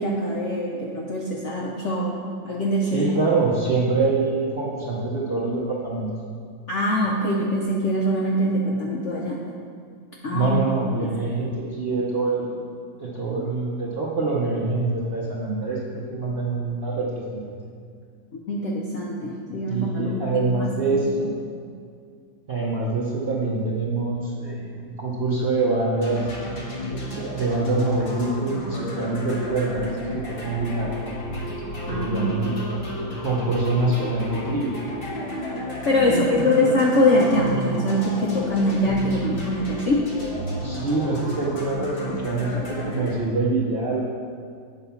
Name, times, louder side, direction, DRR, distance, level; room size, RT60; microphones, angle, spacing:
voice 1, 0.0-2.2 2.4-3.0 6.7-9.4 10.2-10.5 11.0-11.1 18.5-20.7 31.9-32.4 35.9-40.1, left 1 dB, 65° left, -3 dB, 0.7 m, -23 dB
voice 2, 2.9-6.1 10.3-12.6 13.0-17.5 19.7-21.3 22.5-26.3 27.1-31.0 31.9-32.6 33.2-34.8 36.0-36.7 40.6-42.0 42.2-44.1, right 3 dB, 60° right, -5 dB, 0.6 m, -25 dB
sound 1, 26.0-43.1, left 1 dB, 35° left, 1.2 m, -32 dB
7.9 x 4.1 x 5.7 m, 2.2 s
omnidirectional pair, 2.1 m